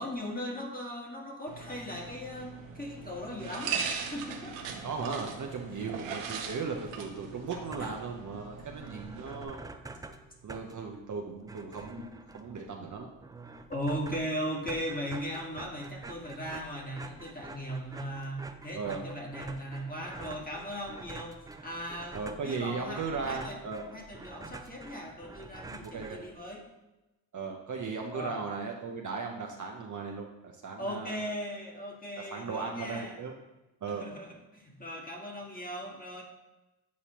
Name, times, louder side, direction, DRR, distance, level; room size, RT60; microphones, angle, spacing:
voice 1, 0.0-4.6 5.7-5.9 7.8-7.9 13.7-23.6 23.9-26.6 28.1-28.4 30.8-33.1 33.9-36.2, equal, 15° left, -1 dB, 1.7 m, -38 dB
sound 1, 1.5-9.4, right 6 dB, 90° right, 0.8 m, -40 dB
voice 2, 4.8-9.6 10.4-13.1 18.7-19.0 22.1-23.9 25.8-26.2 27.3-31.3 32.2-33.3 33.8-34.1, right 4 dB, 40° right, 1 dB, 0.8 m, -37 dB
sound 2, 7.7-8.2 8.5-8.6 8.8-26.6, right 3 dB, 10° right, 0.3 m, -47 dB
8.4 x 4.1 x 3.0 m, 1.1 s
supercardioid pair, 55°, 49 cm